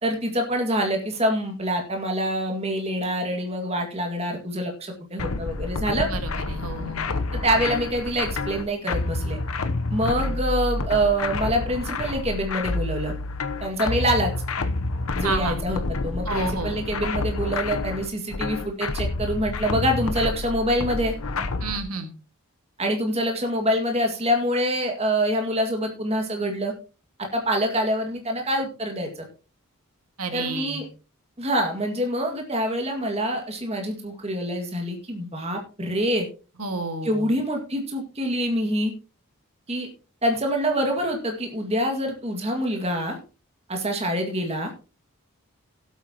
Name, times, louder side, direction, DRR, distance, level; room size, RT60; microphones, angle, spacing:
voice 1, 0.0-6.1 7.4-9.4 9.9-13.1 13.6-14.3 15.1-21.1 22.8-26.7 27.2-29.2 30.3-30.9 31.4-36.3 37.0-38.9 39.7-39.9 40.2-43.2 43.7-44.7, equal, 25° right, 3 dB, 2.0 m, -25 dB
sound 1, 5.2-21.8, left 3 dB, 70° left, 0.9 m, -28 dB
voice 2, 6.0-7.2 15.2-15.6 16.3-16.7 21.6-22.1 30.2-30.8 36.6-37.4, right 3 dB, 80° right, 6 dB, 1.9 m, -30 dB
17.0 x 8.3 x 2.9 m, 0.34 s
head